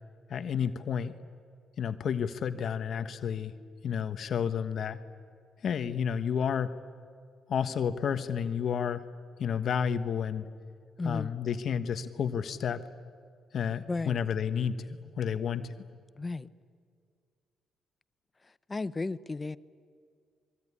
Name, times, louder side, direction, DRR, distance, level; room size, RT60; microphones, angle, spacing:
voice 1, 0.3-1.1 1.8-3.5 3.8-5.0 5.6-6.7 7.5-9.0 9.4-10.4 11.0-12.8 13.5-15.7, left 7 dB, 60° left, 10 dB, 1.3 m, -31 dB
voice 2, 11.0-11.3 13.9-14.2 16.2-16.5 18.7-19.6, left 3 dB, 25° left, 16 dB, 0.8 m, -33 dB
26.0 x 23.0 x 9.9 m, 2.1 s
cardioid pair, 90°, 0 cm